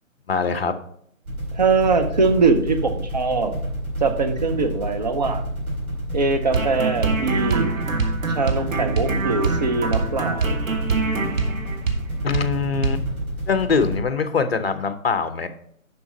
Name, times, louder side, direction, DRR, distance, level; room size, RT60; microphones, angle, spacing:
voice 1, 0.3-0.8 12.2-13.0 13.5-15.5, left 5 dB, 45° left, 10 dB, 0.8 m, -23 dB
sound 1, 1.2-14.0, right 1 dB, 85° right, 3.9 m, -30 dB
voice 2, 1.5-3.5 4.0-5.5 6.1-7.7 8.3-10.6, right 4 dB, 30° right, 6 dB, 0.7 m, -22 dB
sound 2, 6.5-12.0 12.3-12.5 12.8-13.0, right 4 dB, 70° right, 1.5 m, -24 dB
7.1 x 6.0 x 5.1 m, 0.68 s
hypercardioid pair, 160°, 41 cm